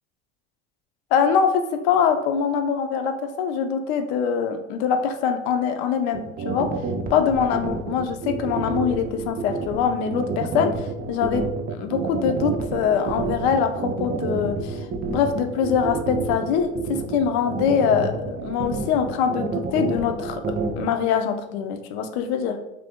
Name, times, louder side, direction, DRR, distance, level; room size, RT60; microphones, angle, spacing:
voice 1, 1.1-6.7 7.1-11.4 11.7-14.8 15.1-22.6, left 7 dB, 75° left, 7 dB, 0.5 m, -23 dB
sound 1, 6.1-20.9, right 5 dB, 30° right, 0.4 m, -28 dB
2.7 x 2.5 x 3.5 m, 0.91 s
supercardioid pair, 85°, 33 cm